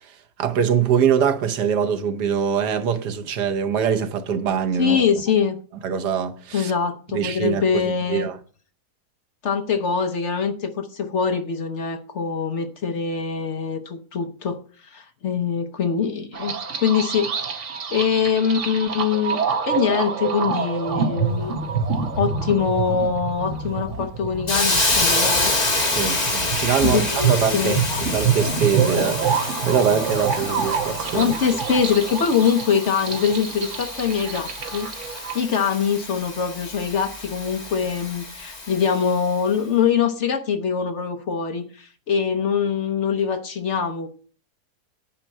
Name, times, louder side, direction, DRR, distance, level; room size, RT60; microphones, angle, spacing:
voice 1, 0.0-5.0 5.8-6.7 7.1-8.4 25.9-31.3, right 7 dB, 85° right, 1.5 m, -23 dB
voice 2, 4.8-5.6 6.5-8.3 9.4-16.5 16.8-19.4 19.7-21.6 22.2-25.5 26.8-28.2 31.1-44.1, left 6 dB, 55° left, 1.0 m, -23 dB
sound 1, 16.3-35.4, right 6 dB, 50° right, 1.3 m, -27 dB
Hiss, 24.5-39.3, left 2 dB, 25° left, 1.6 m, -27 dB
9.9 x 4.4 x 7.3 m
omnidirectional pair, 1.7 m